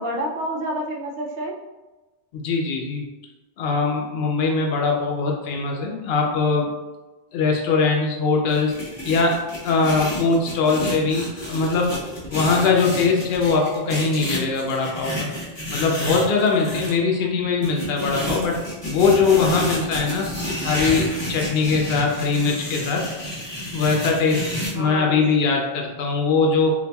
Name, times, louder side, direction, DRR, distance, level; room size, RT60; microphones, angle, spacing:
voice 1, 0.0-1.6 17.1-17.4 24.7-25.2, equal, 70° right, -1 dB, 0.7 m, -29 dB
voice 2, 2.3-3.0 3.6-6.7 7.3-8.7 9.1-11.9 12.3-15.3 15.7-20.3 20.6-23.0 23.7-24.4 24.7-26.7, left 4 dB, 75° left, 1 dB, 0.8 m, -21 dB
sound 1, 8.5-16.9 17.6-24.7, equal, 30° left, 0.8 m, -30 dB
4.0 x 2.5 x 2.2 m, 1.1 s
omnidirectional pair, 1.0 m